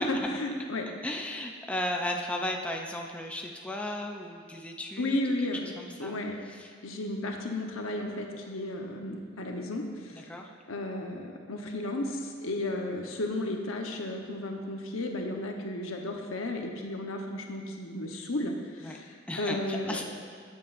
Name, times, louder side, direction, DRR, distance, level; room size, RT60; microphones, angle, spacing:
voice 1, 0.0-0.9 5.0-5.6 6.0-6.4 6.8-10.3 10.7-20.0, left 1 dB, 85° left, 2 dB, 1.0 m, -33 dB
voice 2, 1.0-5.2 5.6-6.2 6.6-6.7 10.1-10.5 18.8-19.0 19.3-20.0, left 1 dB, 5° left, 1 dB, 0.4 m, -35 dB
14.5 x 7.5 x 2.5 m, 2.1 s
head